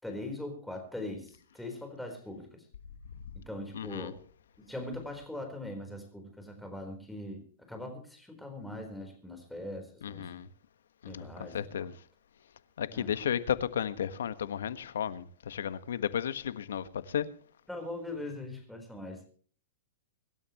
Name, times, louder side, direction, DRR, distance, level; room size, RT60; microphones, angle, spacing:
voice 1, 0.0-2.7 3.3-4.2 4.6-10.3 11.1-11.9 12.9-13.1 17.7-19.2, left 1 dB, ahead, 4.1 m, -41 dB
voice 2, 3.7-4.1 10.0-10.5 11.0-11.3 11.5-11.9 12.8-17.3, left 9 dB, 85° left, 1.4 m, -33 dB
25.0 x 13.0 x 3.1 m
hypercardioid pair, 160°, 0 cm